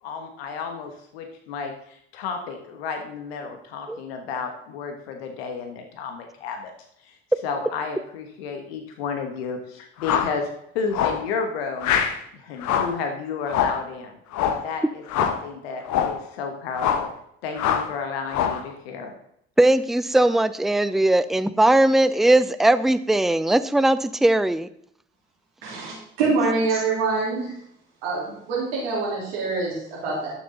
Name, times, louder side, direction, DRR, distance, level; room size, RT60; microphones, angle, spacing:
voice 1, 0.0-6.7 7.0-7.2 7.4-11.9 12.3-14.2 14.6-17.1 17.4-19.1, left 5 dB, 85° left, 5 dB, 1.4 m, -32 dB
sound 1, 10.0-10.4 10.9-11.3 11.8-12.2 12.6-13.0 13.5-13.8 14.3-14.7 15.1-15.4 15.8-16.2 16.7-17.1 17.6-17.9 18.3-18.7, left 8 dB, 65° left, 1.3 m, -24 dB
voice 2, 19.6-24.7, right 1 dB, ahead, 13 dB, 0.6 m, -19 dB
voice 3, 25.6-27.5 28.0-30.3, right 4 dB, 85° right, -6 dB, 3.4 m, -25 dB
11.5 x 7.4 x 4.0 m, 0.72 s
hypercardioid pair, 55°, 30 cm